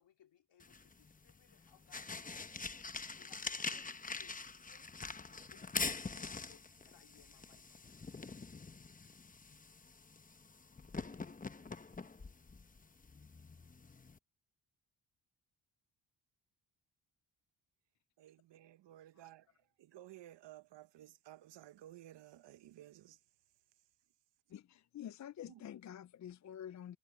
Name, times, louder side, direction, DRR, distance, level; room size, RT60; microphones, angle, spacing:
voice 1, 0.0-4.9 5.3-7.9, left 9 dB, 75° left, 2.8 m, -67 dB
sound 1, 0.6-14.2, left 4 dB, 20° left, 0.9 m, -45 dB
voice 2, 18.2-19.5 19.8-23.2 25.5-25.6, right 14 dB, 75° right, 0.8 m, -56 dB
voice 3, 24.5-27.0, left 10 dB, 45° left, 0.5 m, -48 dB
cardioid pair, 105°, 43 cm